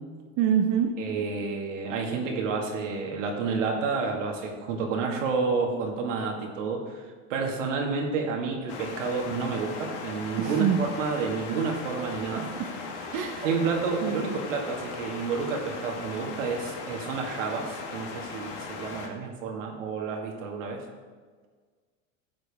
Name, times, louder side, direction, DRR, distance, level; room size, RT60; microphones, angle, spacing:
voice 1, 0.4-0.9 10.4-10.8 12.6-12.7 13.1-13.6 14.0-14.2, right 9 dB, 55° right, 2 dB, 1.0 m, -25 dB
voice 2, 1.0-12.5 13.4-20.9, right 4 dB, 80° right, 1 dB, 2.1 m, -30 dB
sound 1, 8.7-19.1, left 4 dB, 55° left, 1.8 m, -38 dB
12.5 x 7.8 x 3.6 m, 1.5 s
hypercardioid pair, 100°, 37 cm